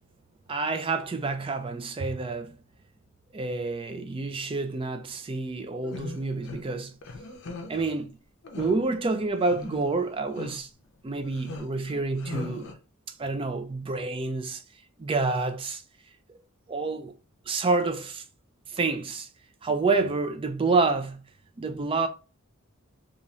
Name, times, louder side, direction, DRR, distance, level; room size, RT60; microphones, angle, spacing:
voice 1, 0.5-2.6 3.3-6.9 7.7-8.2 8.5-10.7 11.0-12.7 13.2-14.6 15.0-15.8 16.7-17.1 17.5-18.2 18.7-19.3 19.6-21.2 21.6-22.1, right 3 dB, 25° right, 0.4 m, -28 dB
sound 1, 5.8-6.6 7.0-7.8 8.4-8.8 9.3-10.0 10.4-10.6 11.2-12.7, left 3 dB, 60° left, 0.5 m, -39 dB
3.0 x 2.4 x 2.5 m
head